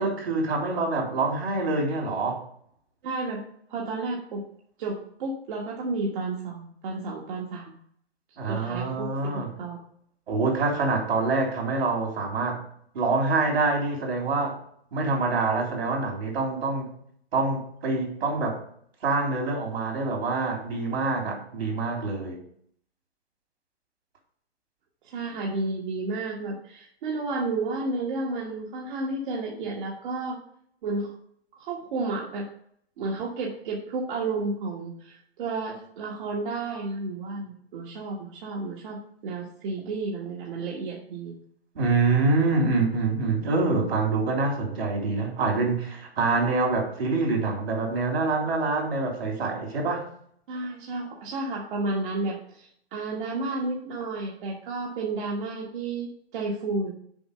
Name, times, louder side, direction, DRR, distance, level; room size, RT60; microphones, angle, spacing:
voice 1, 0.0-2.4 8.4-9.5 10.3-12.6 12.9-14.6 14.9-16.9 17.3-18.6 19.0-22.4 41.8-50.1, right 3 dB, 75° right, 0 dB, 3.5 m, -26 dB
voice 2, 3.0-3.4 3.7-4.4 4.8-7.7 8.4-9.8 25.0-30.4 30.8-31.1 31.6-32.5 33.0-41.4 50.5-56.9, right 3 dB, 55° right, -2 dB, 1.5 m, -32 dB
7.1 x 4.6 x 6.7 m, 0.64 s
hypercardioid pair, 135°, 31 cm